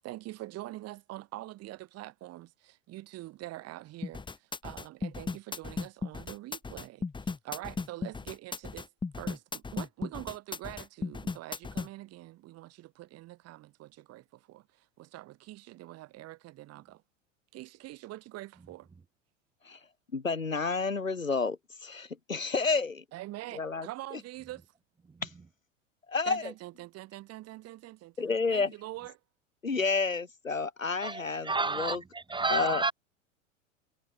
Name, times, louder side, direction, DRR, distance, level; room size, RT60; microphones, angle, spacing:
voice 1, 0.0-8.9 9.2-17.0 17.5-18.9 23.1-24.6 26.3-29.2, right 17 dB, 40° right, 6.0 m, -44 dB
sound 1, 4.0-11.9, left 4 dB, 10° left, 2.8 m, -36 dB
voice 2, 20.1-23.0 23.5-23.9 25.2-25.3 26.1-26.5 28.2-28.7 29.6-32.0 32.5-32.8, left 4 dB, 85° left, 5.3 m, -30 dB
voice 3, 31.0-32.9, right 3 dB, 10° right, 1.8 m, -31 dB
figure-of-eight pair, 90°, 39 cm